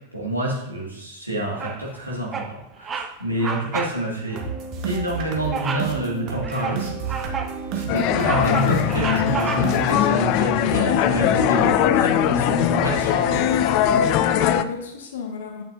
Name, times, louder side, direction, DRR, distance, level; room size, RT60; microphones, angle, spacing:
voice 1, 0.1-4.4 4.8-7.4 7.7-13.4, right 1 dB, 90° right, -4 dB, 1.7 m, -28 dB
Bird vocalization bird call bird song, 1.6-2.0 2.3-2.5 2.8-3.1 3.4-4.0 4.3-4.5 5.5-5.9 6.4-7.6 8.0-9.9, right 5 dB, 20° right, 0.7 m, -30 dB
sound 1, 4.3-12.3, right 5 dB, 40° right, 1.2 m, -32 dB
sound 2, 7.9-14.6, left 10 dB, 40° left, 0.4 m, -20 dB
voice 2, 13.9-15.6, left 6 dB, 60° left, 3 dB, 1.0 m, -33 dB
8.6 x 7.7 x 2.5 m, 0.93 s
figure-of-eight pair, 90°, 0 cm